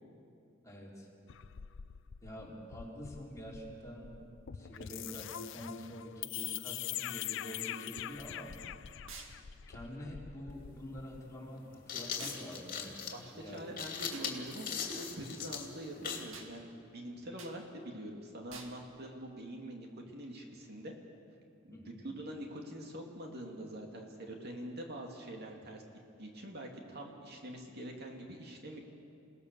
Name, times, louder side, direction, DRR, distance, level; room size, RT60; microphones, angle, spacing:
voice 1, 0.6-1.1 2.2-4.2 4.5-8.5 9.7-13.1 13.3-13.7 21.7-22.0, equal, 15° left, -4 dB, 4.3 m, -46 dB
sound 1, 1.3-11.3, left 11 dB, 65° left, 0.5 m, -44 dB
sound 2, 9.1-9.4 12.2-12.4 14.1-14.3 16.3-16.5 17.4-17.6 18.5-18.8, right 5 dB, 85° right, 2.2 m, -48 dB
sound 3, 10.5-10.6 11.6-16.3, left 6 dB, 45° left, 2.8 m, -40 dB
voice 2, 13.1-19.9 20.1-20.9 21.6-21.8 22.0-25.8 26.2-28.8, right 1 dB, 55° right, 1 dB, 2.5 m, -45 dB
29.0 x 18.0 x 6.9 m, 2.6 s
head